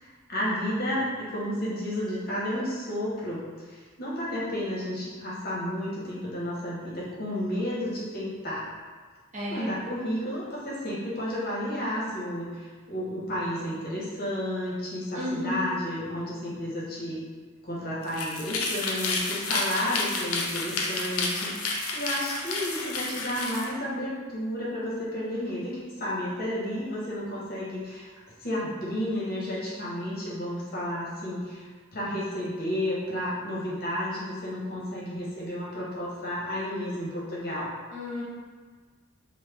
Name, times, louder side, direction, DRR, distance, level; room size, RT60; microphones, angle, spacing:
voice 1, 0.0-8.6 9.5-17.2 17.6-28.1 28.4-37.7, equal, 45° left, -7 dB, 0.9 m, -32 dB
voice 2, 9.3-9.7 15.1-15.7 37.9-38.2, left 2 dB, 35° right, -6 dB, 0.8 m, -32 dB
sound 1, 18.0-23.7, left 3 dB, 75° left, 0.5 m, -30 dB
3.1 x 2.1 x 3.3 m, 1.5 s
head